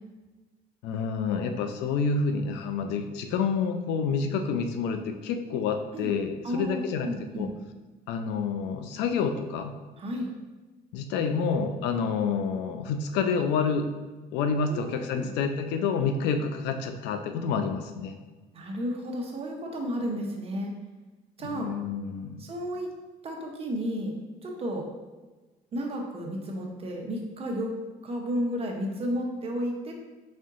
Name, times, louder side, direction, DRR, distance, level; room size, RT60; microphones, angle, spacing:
voice 1, 0.8-7.1 7.4-7.5 8.1-9.7 10.9-13.9 14.3-18.2 21.5-22.4, left 5 dB, 90° left, 7 dB, 0.4 m, -28 dB
voice 2, 6.4-7.5 10.0-10.3 14.7-15.3 18.5-20.7 21.4-21.7 22.4-22.9 23.2-24.2 24.4-24.9 25.7-27.8 28.0-29.9, equal, 35° right, 1 dB, 0.8 m, -32 dB
4.3 x 3.6 x 2.5 m, 1.2 s
cardioid pair, 110°, 17 cm